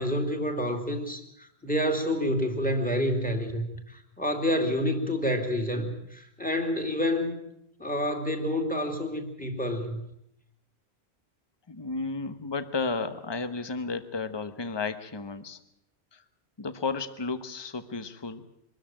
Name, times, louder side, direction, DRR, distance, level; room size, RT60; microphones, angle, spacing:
voice 1, 0.0-7.4 7.8-10.0, equal, 5° left, 5 dB, 2.7 m, -28 dB
voice 2, 11.7-15.6 16.1-16.2 16.6-18.4, left 4 dB, 25° left, 11 dB, 1.1 m, -33 dB
24.0 x 14.0 x 8.9 m, 0.76 s
omnidirectional pair, 1.1 m